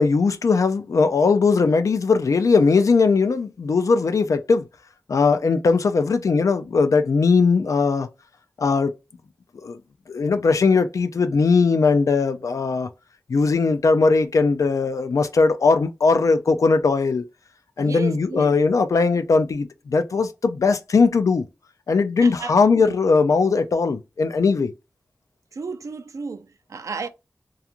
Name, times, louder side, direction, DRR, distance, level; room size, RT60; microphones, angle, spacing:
voice 1, 0.0-4.7 5.1-8.1 8.6-8.9 9.6-9.8 10.1-12.9 13.3-17.2 17.8-21.4 21.9-24.7, left 4 dB, 85° left, 0.4 m, -19 dB
voice 2, 17.8-18.6 22.2-23.0 25.5-27.1, right 4 dB, 80° right, 0.4 m, -33 dB
2.4 x 2.3 x 2.8 m
wide cardioid pair, 65°, 5 cm